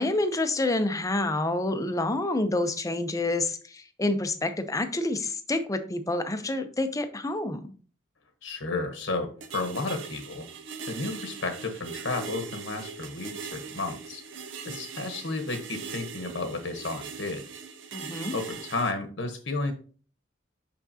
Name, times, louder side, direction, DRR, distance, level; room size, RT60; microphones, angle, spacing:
voice 1, 0.0-7.7 17.9-18.4, left 2 dB, 15° left, 9 dB, 0.6 m, -28 dB
voice 2, 8.4-10.5 10.9-14.2 14.6-17.4 18.3-19.7, left 3 dB, 70° left, 5 dB, 1.1 m, -32 dB
sound 1, 9.4-18.9, right 6 dB, 65° right, 0.7 m, -40 dB
5.9 x 5.8 x 2.8 m, 0.39 s
head